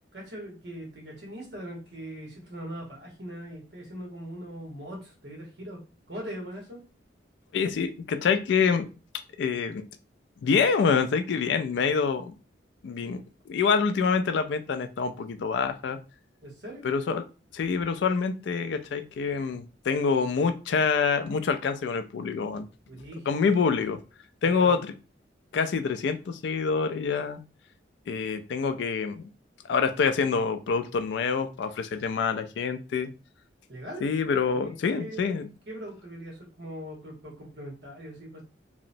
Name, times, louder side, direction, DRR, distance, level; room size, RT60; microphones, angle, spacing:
voice 1, 0.1-5.8 6.1-6.8 16.4-16.9 22.9-23.7 24.4-24.8 33.7-34.1 34.5-38.4, equal, 60° right, -1 dB, 1.1 m, -41 dB
voice 2, 7.5-8.9 9.4-9.8 10.4-12.3 12.8-16.0 16.8-17.2 17.5-22.7 23.3-24.0 24.4-24.9 25.5-27.4 28.1-29.2 29.6-33.1 34.0-35.5, left 5 dB, 70° left, 9 dB, 0.3 m, -26 dB
2.8 x 2.0 x 2.6 m, 0.33 s
head